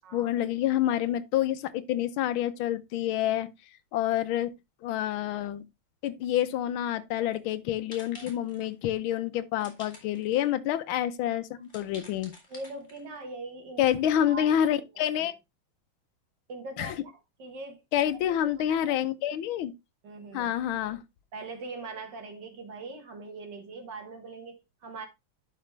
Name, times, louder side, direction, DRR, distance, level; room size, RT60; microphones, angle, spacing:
voice 1, 0.1-3.5 3.9-4.5 4.8-5.6 6.0-12.3 13.8-15.3 16.8-16.9 17.9-19.7 20.3-21.0, left 11 dB, 80° left, 1.5 m, -28 dB
sound 1, 7.3-7.5 7.9-8.7 9.6-10.5 10.9-11.0 11.6-13.2, left 2 dB, 35° left, 2.7 m, -50 dB
voice 2, 8.1-8.7 11.3-11.4 12.5-13.9 14.2-14.5 15.2-15.3 16.5-17.8 18.1-18.2 18.5-18.9 20.0-20.5 21.3-25.1, right 3 dB, 60° right, 2.0 m, -42 dB
11.0 x 5.0 x 3.3 m
omnidirectional pair, 2.2 m